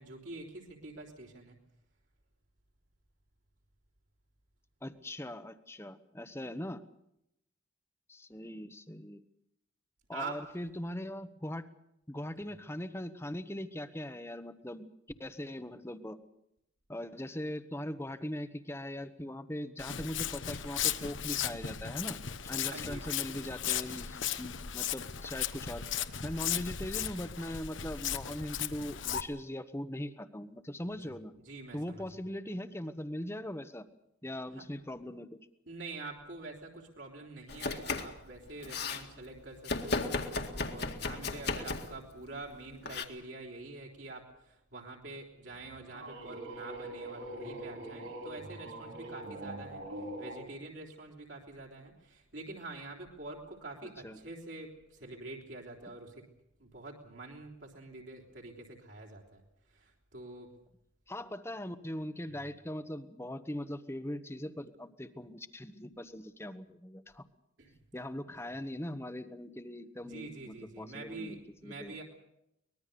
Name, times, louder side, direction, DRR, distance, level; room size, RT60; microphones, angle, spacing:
voice 1, 0.0-1.6 10.1-10.4 12.4-12.5 22.6-23.0 31.4-32.1 34.5-34.6 35.7-49.8 50.2-56.2 56.6-59.4 59.7-60.5 67.6-67.8 70.0-72.0, right 2 dB, 65° right, -2 dB, 3.7 m, -46 dB
voice 2, 4.8-6.8 8.1-9.2 10.1-11.7 12.1-14.9 15.2-16.2 16.9-25.8 26.2-31.3 31.7-33.9 34.2-35.4 54.0-54.2 61.1-67.3 67.9-71.9, left 1 dB, 15° left, 11 dB, 1.1 m, -40 dB
Walk footsteps, 19.8-29.2, left 9 dB, 70° left, 1.1 m, -36 dB
Domestic sounds home sounds, 37.5-38.2 38.5-39.0 39.6-42.0 42.8-43.0, left 3 dB, 55° left, 2.1 m, -35 dB
sound 1, 45.5-50.4, right 1 dB, 85° right, 6.7 m, -43 dB
24.0 x 20.5 x 6.9 m, 0.80 s
head